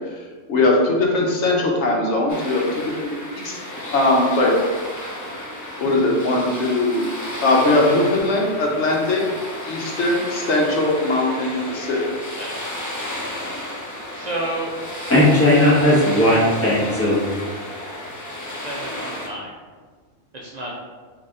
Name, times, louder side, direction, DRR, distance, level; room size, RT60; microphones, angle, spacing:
voice 1, 0.2-3.6 3.9-4.6 5.8-7.1 7.4-9.2 9.6-12.0, left 2 dB, 70° left, -1 dB, 1.1 m, -20 dB
sound 1, 2.3-19.3, left 1 dB, 30° left, 0.3 m, -32 dB
voice 2, 14.1-14.7 18.6-19.5 20.3-20.7, right 1 dB, 50° right, -2 dB, 0.5 m, -30 dB
voice 3, 15.1-17.2, left 1 dB, 10° left, -7 dB, 1.1 m, -16 dB
4.1 x 2.8 x 3.6 m, 1.5 s
omnidirectional pair, 1.2 m